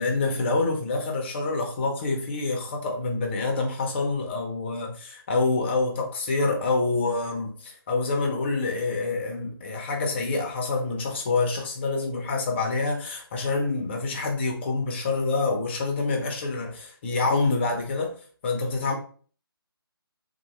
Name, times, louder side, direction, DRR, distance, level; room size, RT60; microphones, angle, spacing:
voice 1, 0.0-18.1 18.4-18.9, left 3 dB, 25° left, 0.5 m, -27 dB
2.8 x 2.0 x 2.9 m
figure-of-eight pair, 155°, 13 cm